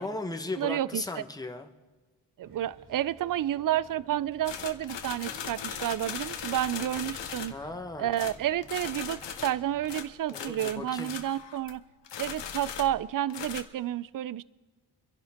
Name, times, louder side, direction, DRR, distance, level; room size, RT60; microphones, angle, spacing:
voice 1, 0.0-1.7 7.5-8.2 10.3-11.1, left 2 dB, 10° left, 5 dB, 1.1 m, -36 dB
voice 2, 0.6-1.0 2.4-7.5 8.0-11.8 12.2-14.4, right 12 dB, 50° right, 20 dB, 0.5 m, -30 dB
sound 1, 2.4-10.0, right 3 dB, 70° right, 3.1 m, -54 dB
sound 2, 4.4-7.7 8.1-11.8 12.0-13.6, left 8 dB, 90° left, 1.1 m, -39 dB
25.5 x 11.0 x 3.6 m, 1.3 s
wide cardioid pair, 95°, 42 cm